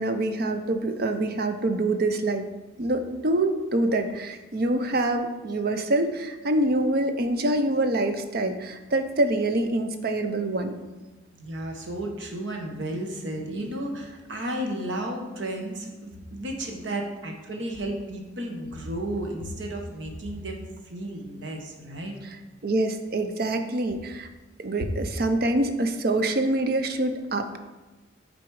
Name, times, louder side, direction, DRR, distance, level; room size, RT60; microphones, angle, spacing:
voice 1, 0.0-2.5 2.8-10.8 22.2-22.4 22.6-24.3 24.6-27.6, right 2 dB, 50° right, 8 dB, 0.6 m, -25 dB
voice 2, 11.4-22.1, right 1 dB, 65° right, 2 dB, 1.1 m, -33 dB
8.0 x 4.0 x 4.8 m, 1.2 s
head